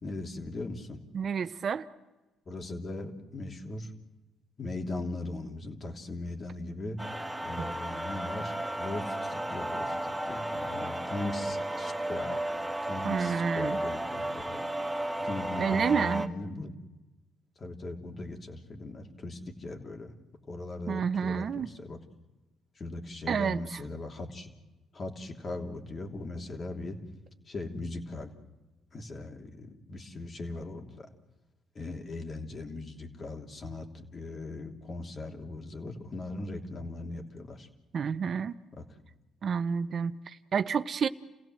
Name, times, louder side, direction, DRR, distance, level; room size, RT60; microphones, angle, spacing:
voice 1, 0.0-1.0 2.5-3.9 4.6-7.0 7.4-12.5 12.8-14.6 15.2-16.7 17.6-20.1 20.5-22.0 22.8-24.5 24.9-27.0 27.5-28.3 28.9-31.1 31.7-37.7 38.7-38.8, left 2 dB, 40° left, 3.1 m, -39 dB
voice 2, 1.1-1.9 7.6-7.7 13.0-13.8 15.6-16.3 20.9-21.7 23.3-23.8 37.9-38.5 39.4-41.1, right 6 dB, 55° right, 0.7 m, -29 dB
sound 1, 7.0-16.3, right 1 dB, 5° right, 1.5 m, -33 dB
29.0 x 16.5 x 7.8 m
supercardioid pair, 65°, 0 cm